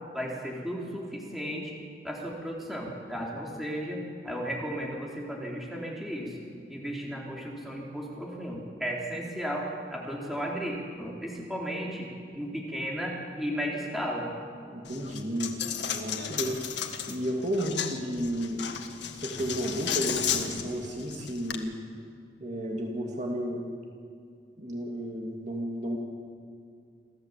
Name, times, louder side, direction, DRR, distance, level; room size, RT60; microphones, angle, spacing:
voice 1, 0.1-1.7 2.0-6.4 6.7-14.3, equal, ahead, -3 dB, 3.8 m, -34 dB
voice 2, 14.7-15.5 15.9-16.6 17.1-18.6 19.2-21.7 22.4-23.6 24.6-26.0, equal, 40° right, 0 dB, 2.6 m, -32 dB
Coin (dropping), 14.9-21.6, left 8 dB, 80° left, 1.8 m, -34 dB
27.5 x 15.0 x 8.4 m, 2.3 s
head